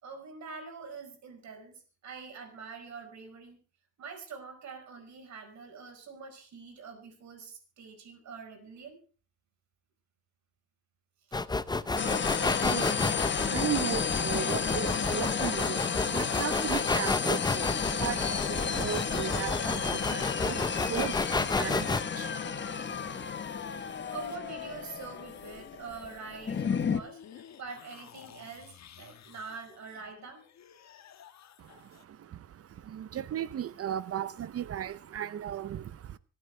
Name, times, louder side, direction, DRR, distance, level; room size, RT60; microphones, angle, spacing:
voice 1, 0.0-3.6 4.0-9.0 11.3-11.4 24.1-30.4, right 5 dB, 65° right, 5.0 m, -45 dB
sound 1, 11.3-22.0, left 3 dB, 15° left, 0.7 m, -31 dB
voice 2, 11.7-23.3 31.6-36.2, right 10 dB, 50° right, 0.7 m, -37 dB
sound 2, 12.0-27.0, left 6 dB, 40° left, 1.2 m, -32 dB
sound 3, 13.0-22.0 22.3-32.0, left 9 dB, 65° left, 1.5 m, -51 dB
25.5 x 9.6 x 3.4 m
cardioid pair, 90°, 30 cm